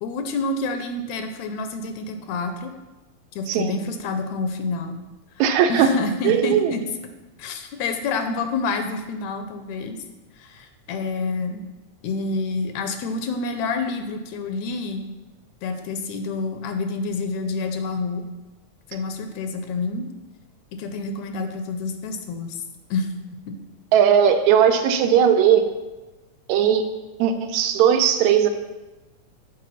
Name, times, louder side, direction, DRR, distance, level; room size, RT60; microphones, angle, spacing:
voice 1, 0.0-2.7 3.3-5.0 5.7-6.8 7.4-10.0 10.4-11.6 12.0-15.0 15.6-18.2 18.9-20.1 20.7-22.6 22.9-23.1 23.5-23.6, left 3 dB, 80° left, 7 dB, 1.8 m, -28 dB
voice 2, 5.4-5.9 6.2-6.7 23.9-25.7 26.5-26.9 27.2-28.5, right 8 dB, 80° right, 7 dB, 1.8 m, -18 dB
6.7 x 5.1 x 5.6 m, 1.1 s
omnidirectional pair, 3.4 m